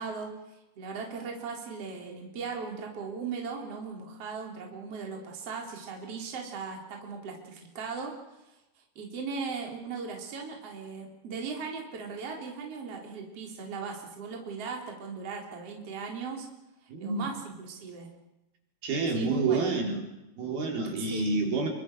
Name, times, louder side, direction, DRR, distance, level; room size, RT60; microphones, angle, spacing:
voice 1, 0.0-16.5 16.8-18.1 19.1-19.7 20.9-21.3, right 5 dB, 35° right, 0 dB, 4.6 m, -38 dB
voice 2, 16.9-17.3 18.8-20.0 20.4-21.7, right 3 dB, 60° right, 1 dB, 5.6 m, -28 dB
28.0 x 25.5 x 6.3 m, 0.94 s
omnidirectional pair, 4.9 m